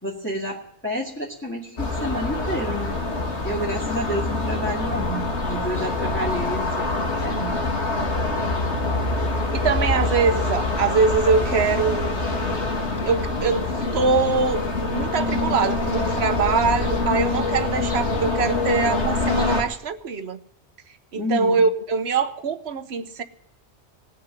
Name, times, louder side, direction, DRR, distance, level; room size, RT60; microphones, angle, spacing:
voice 1, 0.0-3.0 3.4-7.6 21.1-21.6, equal, 10° left, 2.0 m, -30 dB
sound 1, 1.8-19.6, left 2 dB, 80° left, 2.3 m, -25 dB
voice 2, 9.5-12.2 13.1-14.7 14.9-20.4 21.1-23.2, right 5 dB, 70° right, 1.2 m, -23 dB
18.0 x 6.6 x 9.6 m
omnidirectional pair, 1.1 m